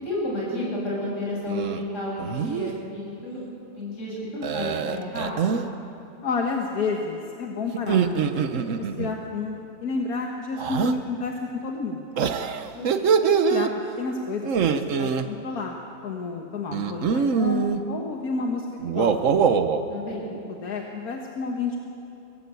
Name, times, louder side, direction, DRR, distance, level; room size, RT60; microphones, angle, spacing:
voice 1, 0.0-3.4 3.7-5.5 12.7-12.8 19.9-20.2, left 1 dB, 55° left, -4 dB, 7.2 m, -31 dB
sound 1, 1.5-1.8 2.2-2.7 4.4-5.7 7.7-9.1 10.6-11.0 12.2-13.7 14.4-15.3 16.7-17.8 18.8-19.8, right 6 dB, 60° right, 1.2 m, -23 dB
voice 2, 6.2-12.1 13.2-13.7 14.0-15.8 16.0-19.1 20.6-21.8, left 4 dB, 85° left, 1 dB, 1.9 m, -30 dB
22.5 x 18.0 x 8.3 m, 2.7 s
omnidirectional pair, 1.5 m